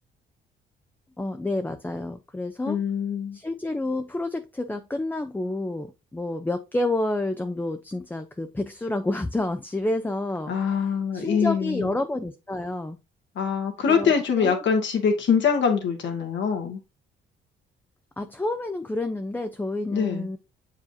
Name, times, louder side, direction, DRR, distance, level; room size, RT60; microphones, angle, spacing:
voice 1, 1.2-2.8 3.3-10.5 11.1-13.0 13.9-14.6 18.2-20.4, left 2 dB, 10° left, 0.5 m, -29 dB
voice 2, 2.7-3.4 10.5-11.9 13.4-16.8 19.9-20.3, left 6 dB, 70° left, 1.8 m, -24 dB
7.3 x 4.9 x 2.7 m
cardioid pair, 90°, 20 cm